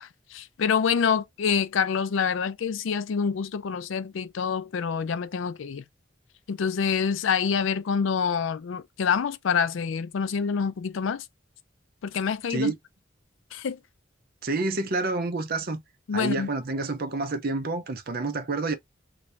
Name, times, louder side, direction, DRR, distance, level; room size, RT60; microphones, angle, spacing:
voice 1, 0.0-5.8 6.5-11.2 12.0-12.7 13.5-13.8 16.1-16.5, left 6 dB, 70° left, 0.4 m, -26 dB
voice 2, 14.4-15.8 16.1-18.8, right 3 dB, 50° right, 0.7 m, -28 dB
3.0 x 2.7 x 3.3 m
head